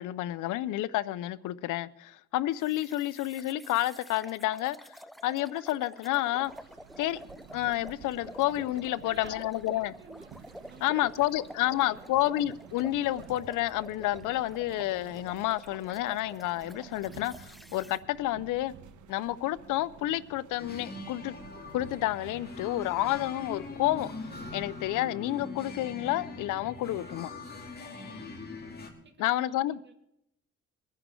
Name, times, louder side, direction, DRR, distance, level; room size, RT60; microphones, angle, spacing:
voice 1, 0.0-4.8 5.2-6.5 7.0-7.2 7.5-9.9 10.8-18.7 19.1-21.4 21.7-24.1 24.5-27.3 29.2-29.9, left 15 dB, 90° left, 0.6 m, -30 dB
sound 1, 2.6-18.0, equal, ahead, 0.5 m, -49 dB
sound 2, 6.4-24.9, right 7 dB, 75° right, 1.3 m, -52 dB
voice 2, 8.9-10.3 10.6-12.3 29.0-29.9, right 4 dB, 35° right, 2.6 m, -54 dB
sound 3, 20.6-28.9, left 3 dB, 30° left, 3.1 m, -42 dB
24.0 x 9.9 x 3.8 m
cardioid pair, 90°, 30 cm